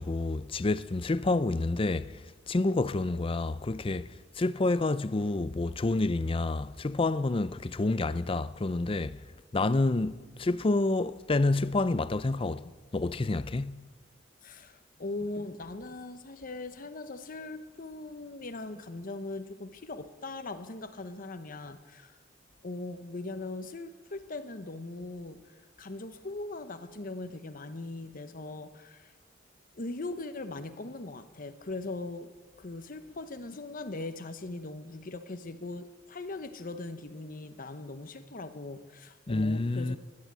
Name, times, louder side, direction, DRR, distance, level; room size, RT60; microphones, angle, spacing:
voice 1, 0.0-4.1 4.4-9.2 9.5-13.8 39.3-40.0, left 2 dB, 30° left, 0.5 m, -28 dB
voice 2, 14.4-22.2 22.6-29.1 29.8-32.3 32.6-40.0, left 2 dB, 45° left, 1.0 m, -40 dB
17.5 x 10.5 x 7.4 m
head